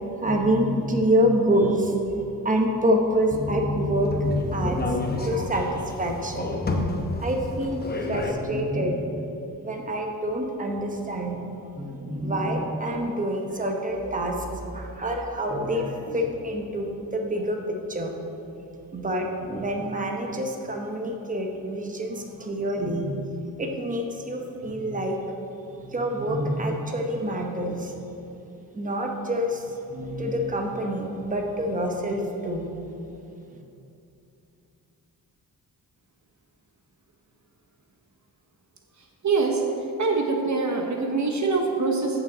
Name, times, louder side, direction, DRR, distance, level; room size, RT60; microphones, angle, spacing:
voice 1, 0.2-4.1 4.4-6.5 7.2-7.8 8.1-9.2 9.6-18.1 18.9-23.2 23.6-25.2 25.6-27.9 28.7-32.7 33.5-33.6, equal, 20° right, 2 dB, 1.0 m, -27 dB
sound 1, 3.3-8.3, left 2 dB, 25° left, 0.9 m, -29 dB
voice 2, 38.9-42.2, right 4 dB, 50° right, 2 dB, 0.9 m, -25 dB
15.0 x 6.0 x 3.9 m, 2.8 s
wide cardioid pair, 120°, 36 cm